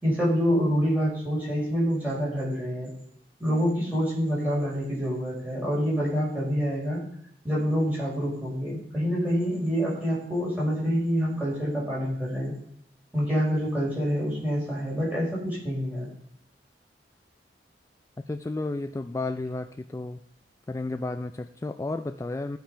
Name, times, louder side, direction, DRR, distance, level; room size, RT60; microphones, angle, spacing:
voice 1, 0.0-2.9 3.4-7.0 7.4-12.5 13.1-16.1, equal, 10° right, -6 dB, 5.5 m, -26 dB
voice 2, 18.3-20.2 20.7-22.6, left 2 dB, 15° left, 10 dB, 0.3 m, -32 dB
15.0 x 5.9 x 5.6 m, 0.67 s
head